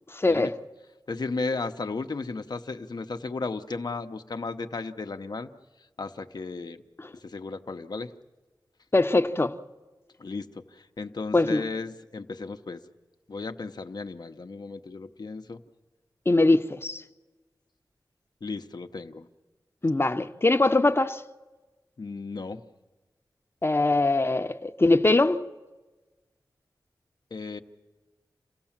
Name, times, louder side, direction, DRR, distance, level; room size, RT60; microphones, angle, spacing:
voice 1, 0.1-0.6 7.0-7.1 8.9-9.6 11.3-11.6 16.3-17.0 19.8-21.2 23.6-25.4, left 2 dB, 30° left, 0.9 m, -22 dB
voice 2, 1.1-5.5 6.0-6.8 7.2-8.1 10.2-10.6 11.0-12.8 13.3-15.6 18.4-19.3 22.0-22.6 27.3-27.6, left 3 dB, 65° left, 0.9 m, -34 dB
28.0 x 16.0 x 7.3 m
cardioid pair, 50°, 8 cm